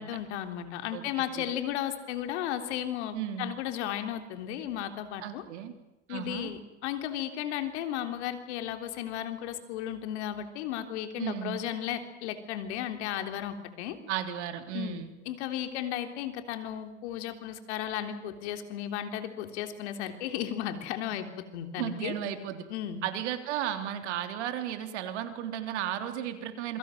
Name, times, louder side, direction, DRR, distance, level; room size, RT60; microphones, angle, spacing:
voice 1, 0.0-5.4 6.1-14.0 14.7-22.1 22.7-23.0, left 11 dB, 75° left, 7 dB, 3.6 m, -35 dB
voice 2, 0.9-1.5 3.1-3.5 5.2-5.7 6.1-6.5 11.2-11.6 14.1-15.1 21.8-22.7 23.0-26.8, right 10 dB, 80° right, 7 dB, 3.6 m, -34 dB
27.5 x 23.5 x 7.8 m, 1.0 s
hypercardioid pair, 90°, 34 cm